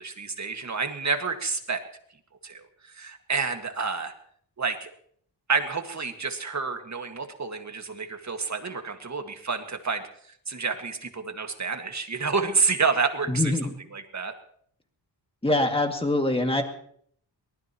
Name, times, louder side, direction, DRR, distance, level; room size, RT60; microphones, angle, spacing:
voice 1, 0.0-1.8 2.4-4.1 4.6-4.9 5.5-10.1 10.5-13.5 13.9-14.3, right 4 dB, 40° right, 6 dB, 1.8 m, -29 dB
voice 2, 13.3-13.7 15.4-16.6, left 2 dB, 15° left, 4 dB, 2.2 m, -24 dB
23.5 x 19.5 x 3.0 m, 0.62 s
wide cardioid pair, 110°, 44 cm